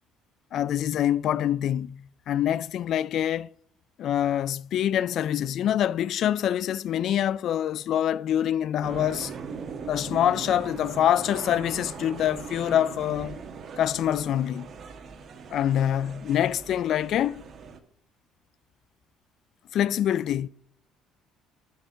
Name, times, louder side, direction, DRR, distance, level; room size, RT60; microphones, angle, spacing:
voice 1, 0.5-3.5 4.0-9.3 9.9-13.4 13.8-14.7 15.5-17.4 19.7-20.5, left 10 dB, 65° left, 0.3 m, -25 dB
sound 1, 8.8-17.8, right 5 dB, 50° right, 1.2 m, -40 dB
12.5 x 4.6 x 6.3 m
supercardioid pair, 75°, 0 cm